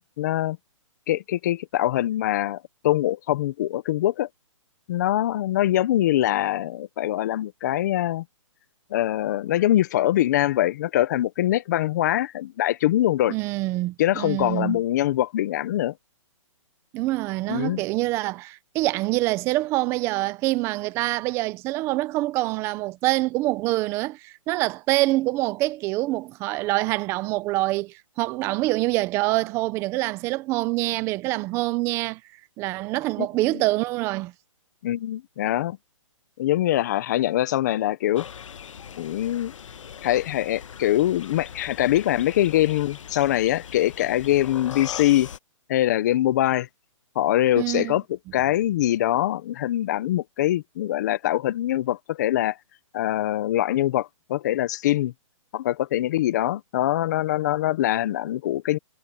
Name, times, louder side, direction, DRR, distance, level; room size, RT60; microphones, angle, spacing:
voice 1, 0.2-0.6 1.1-4.3 4.9-8.2 8.9-13.3 14.0-15.9 17.5-17.8 33.2-33.3 34.8-35.8 36.4-38.3 39.0-39.5 40.0-45.3 45.7-46.7 47.2-48.0 48.3-52.6 52.9-55.1 55.5-58.8, left 13 dB, 35° left, 0.8 m, -23 dB
voice 2, 13.3-14.8 16.9-32.2 32.6-34.3 47.6-48.0, right 19 dB, 15° right, 0.7 m, -25 dB
sound 1, 38.1-45.4, left 8 dB, 70° left, 1.3 m, -40 dB
hypercardioid pair, 165°, 17 cm